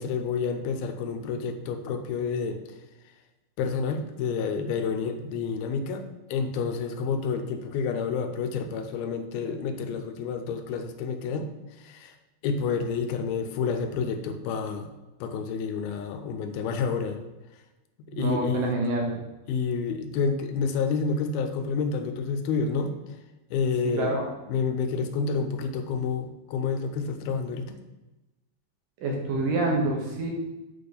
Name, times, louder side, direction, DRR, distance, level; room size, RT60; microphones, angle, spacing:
voice 1, 0.0-2.6 3.6-6.0 6.3-11.5 11.8-12.1 12.4-14.9 15.2-17.2 18.1-18.8 19.5-22.9 23.5-24.2 24.5-27.8, left 5 dB, 80° left, 6 dB, 2.5 m, -29 dB
voice 2, 18.1-19.2 24.0-24.3 29.0-30.3, right 2 dB, 70° right, 0 dB, 2.5 m, -27 dB
8.5 x 4.3 x 5.1 m, 1.0 s
omnidirectional pair, 4.4 m